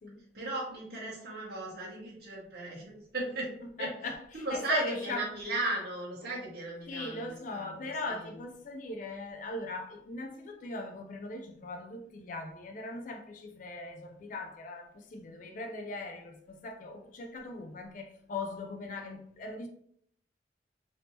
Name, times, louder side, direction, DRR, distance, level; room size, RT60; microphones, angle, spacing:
voice 1, 0.3-3.5 3.8-3.9 4.3-7.9, right 2 dB, 55° right, 1.1 m, -36 dB
voice 2, 3.6-5.4 6.2-6.3 6.9-19.7, left 2 dB, 45° left, 0.3 m, -39 dB
3.4 x 2.7 x 2.8 m
head